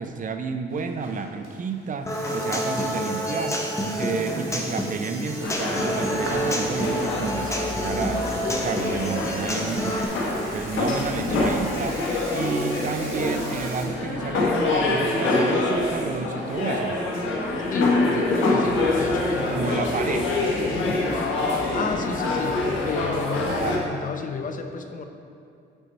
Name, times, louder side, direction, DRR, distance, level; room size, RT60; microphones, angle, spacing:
voice 1, 0.0-10.1 10.5-12.0 12.3-17.0 19.5-20.5 20.9-21.0 23.5-24.0, right 5 dB, 40° right, 7 dB, 0.6 m, -31 dB
Burping eructation, 0.7-13.8, right 2 dB, 90° right, 1.3 m, -41 dB
Human voice / Acoustic guitar, 2.1-10.0, equal, 15° left, 1.0 m, -28 dB
sound 1, 5.4-23.8, left 2 dB, 80° left, 1.1 m, -25 dB
voice 2, 8.5-8.8 10.4-10.7 17.7-19.8 20.1-20.2 20.7-21.1 21.7-25.1, left 4 dB, 40° left, 6 dB, 0.7 m, -33 dB
9.0 x 4.5 x 4.2 m, 2.5 s
cardioid pair, 90°, 20 cm